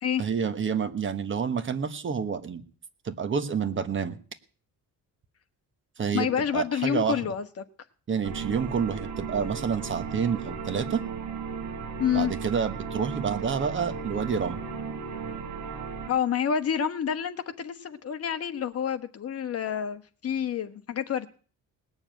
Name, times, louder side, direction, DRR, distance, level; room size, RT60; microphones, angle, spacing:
voice 1, 0.2-2.6 3.0-4.2 6.0-6.3 6.5-7.2 8.1-11.0 12.1-14.6, right 6 dB, 35° right, 10 dB, 1.2 m, -28 dB
voice 2, 6.1-7.4 12.0-12.3 16.1-21.3, left 8 dB, 45° left, 8 dB, 1.3 m, -28 dB
sound 1, 8.2-16.1, right 5 dB, 55° right, 3.4 m, -35 dB
19.5 x 7.1 x 9.1 m, 0.41 s
cardioid pair, 170°, 35 cm